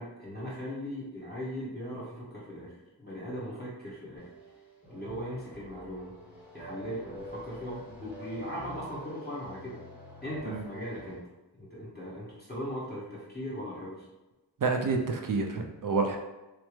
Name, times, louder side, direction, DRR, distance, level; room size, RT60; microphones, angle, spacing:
voice 1, 0.0-4.3 4.9-6.1 6.5-9.8 10.2-11.2 11.6-14.1, equal, 25° left, -8 dB, 1.2 m, -39 dB
sound 1, 4.2-11.2, equal, 5° right, 1.0 m, -46 dB
voice 2, 14.6-16.2, right 4 dB, 50° right, 3 dB, 0.5 m, -28 dB
3.3 x 2.0 x 3.0 m, 1.1 s
wide cardioid pair, 60°, 42 cm